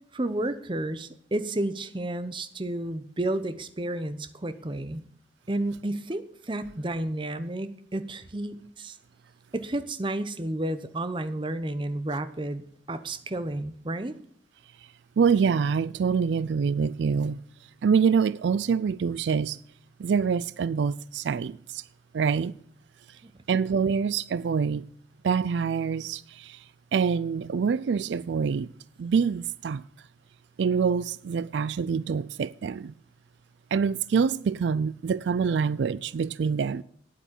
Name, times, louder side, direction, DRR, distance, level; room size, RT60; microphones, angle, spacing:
voice 1, 0.1-5.0 5.5-9.0 9.5-14.2 23.2-23.3, right 1 dB, 25° right, 0.7 m, -31 dB
voice 2, 15.2-17.4 17.8-19.6 20.0-21.8 22.1-22.5 23.5-24.9 25.2-26.6 26.9-28.7 29.0-29.8 30.6-32.9 33.7-36.8, right 6 dB, 80° right, 0.4 m, -25 dB
9.3 x 8.3 x 7.4 m
head